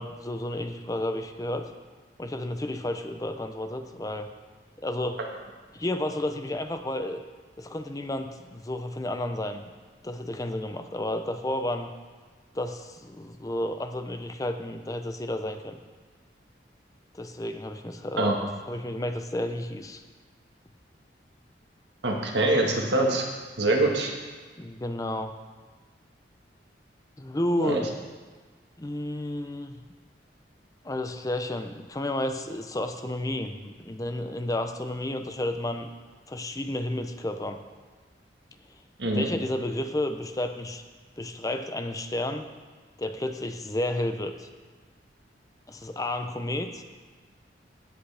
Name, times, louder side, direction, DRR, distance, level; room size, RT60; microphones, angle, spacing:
voice 1, 0.0-1.7 2.2-4.3 4.8-5.2 5.7-7.2 7.6-9.6 10.0-11.9 12.5-15.8 17.1-20.0 24.6-25.3 27.2-27.9 28.8-29.7 30.8-35.9 36.3-37.7 39.0-40.8 41.2-42.5 43.0-44.5 45.7-46.8, left 1 dB, 20° left, 7 dB, 0.5 m, -31 dB
voice 2, 22.0-23.3 23.6-24.1 27.6-27.8 39.0-39.3, right 2 dB, 75° right, 1 dB, 1.5 m, -24 dB
15.5 x 8.1 x 3.4 m, 1.4 s
head